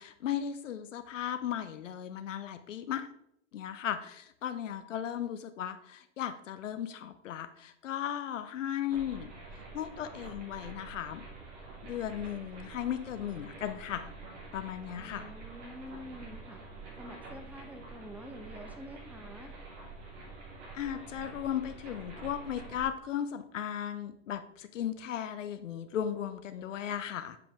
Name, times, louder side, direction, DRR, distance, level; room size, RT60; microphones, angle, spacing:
voice 1, 0.0-3.1 3.5-9.3 9.7-11.3 11.8-14.1 14.5-15.3 20.7-27.4, left 10 dB, 85° left, 10 dB, 0.5 m, -36 dB
sound 1, 8.9-22.9, right 3 dB, 70° right, 2.7 m, -47 dB
voice 2, 15.0-16.6 17.0-19.5, left 1 dB, 5° right, 5 dB, 0.9 m, -47 dB
7.6 x 5.0 x 3.6 m, 0.76 s
hypercardioid pair, 95°, 37 cm